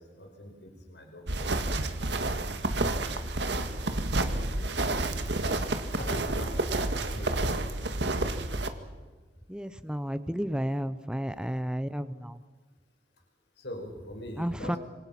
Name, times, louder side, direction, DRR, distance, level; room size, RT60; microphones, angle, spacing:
voice 1, 0.0-1.8 3.8-5.5 5.9-6.7 7.0-7.9 11.3-11.4 13.6-14.8, left 1 dB, 75° left, 2 dB, 5.5 m, -43 dB
sound 1, 1.3-8.7, right 2 dB, 80° right, 1.9 m, -29 dB
voice 2, 9.5-12.4 14.4-14.8, equal, 5° right, 12 dB, 0.7 m, -32 dB
26.5 x 26.0 x 6.0 m, 1.3 s
head